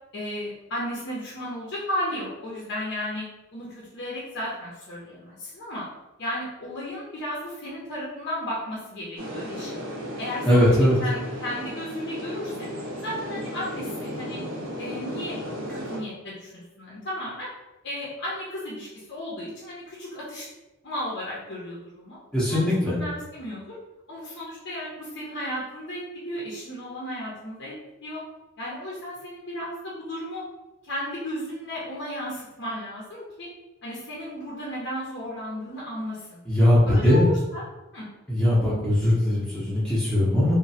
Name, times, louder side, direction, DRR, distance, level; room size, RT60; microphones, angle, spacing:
voice 1, 0.1-3.3 3.5-5.8 6.2-9.8 10.2-10.6 11.0-12.7 13.0-14.4 14.8-15.3 15.7-17.5 17.8-20.5 20.8-22.2 22.5-23.8 24.1-27.7 28.0-28.2 28.6-30.4 30.8-33.5 33.8-36.4 36.9-37.6 37.9-38.1, equal, 50° left, -6 dB, 0.5 m, -34 dB
sound 1, 9.2-16.0, equal, 65° right, 0.6 m, -35 dB
voice 2, 10.5-11.0 22.3-23.0 36.5-37.3 38.3-40.5, left 1 dB, 5° left, -11 dB, 0.6 m, -20 dB
3.0 x 2.1 x 2.7 m, 1.0 s
head